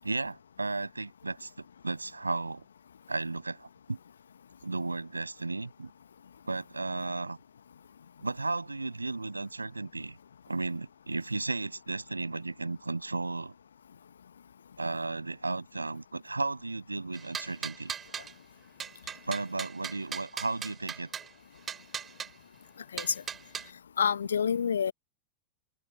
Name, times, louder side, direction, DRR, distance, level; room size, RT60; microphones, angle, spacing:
voice 1, 0.0-2.7 3.1-4.0 4.6-5.9 6.5-7.4 8.2-10.2 10.5-13.5 14.8-17.9 19.3-21.1, right 3 dB, 80° right, 7.8 m, -34 dB
sound 1, 17.1-18.3 18.8-21.3 21.7-22.3 23.0-23.7, right 8 dB, 20° right, 3.5 m, -38 dB
voice 2, 24.0-24.9, left 7 dB, 70° left, 1.8 m, -27 dB
figure-of-eight pair, 90°, 0 cm